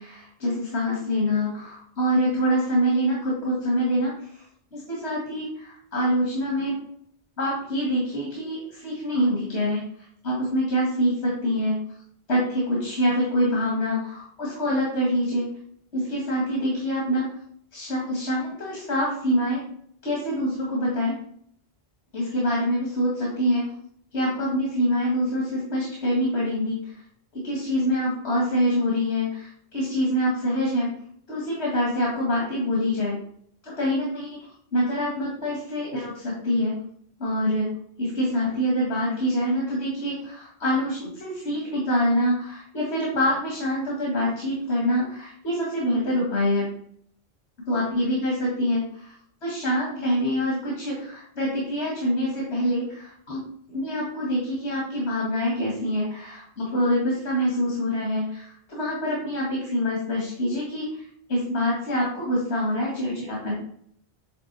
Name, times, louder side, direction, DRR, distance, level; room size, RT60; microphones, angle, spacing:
voice 1, 0.0-4.4 4.7-6.7 7.4-9.8 10.2-11.8 12.3-15.5 15.9-17.3 17.7-19.6 20.0-21.1 22.1-23.6 24.1-26.9 27.3-30.9 31.3-33.2 33.6-34.3 34.7-36.8 37.2-37.7 38.0-46.7 47.7-49.2 49.4-53.4 53.7-63.5, equal, 85° left, -3 dB, 2.0 m, -25 dB
8.5 x 3.7 x 3.9 m, 0.65 s
omnidirectional pair, 1.1 m